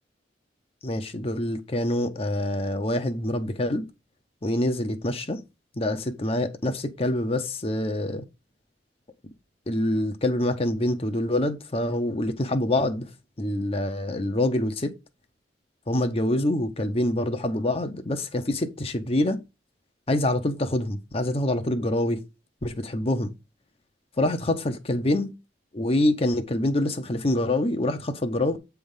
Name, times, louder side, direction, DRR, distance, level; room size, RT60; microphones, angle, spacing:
voice 1, 0.8-3.8 4.4-5.4 5.8-8.2 9.7-13.1 13.4-14.9 15.9-19.4 20.1-22.2 22.6-23.3 24.2-25.3 25.7-28.6, left 1 dB, 35° left, 0.8 m, -26 dB
8.4 x 3.5 x 5.5 m
head